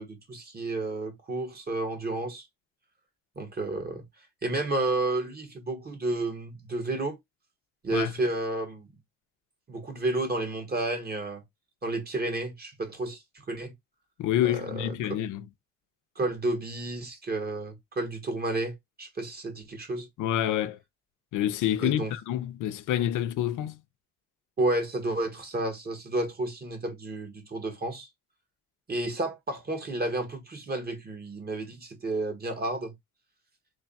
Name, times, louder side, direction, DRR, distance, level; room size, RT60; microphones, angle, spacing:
voice 1, 0.0-2.4 3.3-4.0 4.4-7.2 7.8-8.9 9.7-11.4 11.8-13.2 13.5-13.7 14.4-15.2 16.1-20.1 21.8-22.1 24.6-28.1 28.9-32.9, right 2 dB, 30° right, 1.5 m, -31 dB
voice 2, 14.2-15.5 20.2-20.8 21.3-23.8, left 11 dB, 85° left, 0.6 m, -27 dB
3.2 x 2.3 x 3.9 m
cardioid pair, 90°, 30 cm